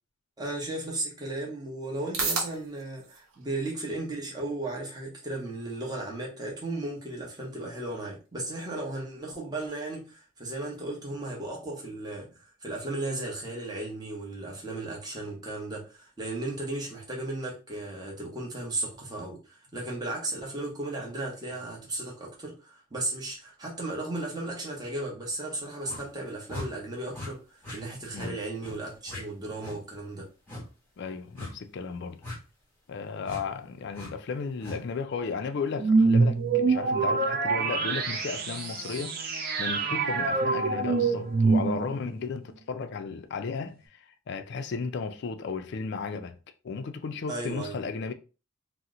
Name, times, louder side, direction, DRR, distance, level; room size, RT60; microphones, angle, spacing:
voice 1, 0.4-30.3 47.3-47.8, right 2 dB, 20° right, 0.8 m, -35 dB
sound 1, 0.7-17.6, right 4 dB, 65° right, 0.8 m, -43 dB
sound 2, 25.8-26.0 26.5-26.7 27.1-27.3 27.6-27.8 28.1-28.3 28.6-28.8 29.1-29.2 29.6-29.8 30.5-30.6 31.4-31.5 32.2-32.4 33.2-33.4 33.9-34.1 34.6-34.8, left 1 dB, 10° left, 1.1 m, -39 dB
voice 2, 31.0-32.2 32.9-46.4 46.6-48.1, left 5 dB, 50° left, 0.3 m, -34 dB
sound 3, 35.8-42.1, right 4 dB, 45° right, 0.5 m, -25 dB
2.8 x 2.0 x 3.6 m
head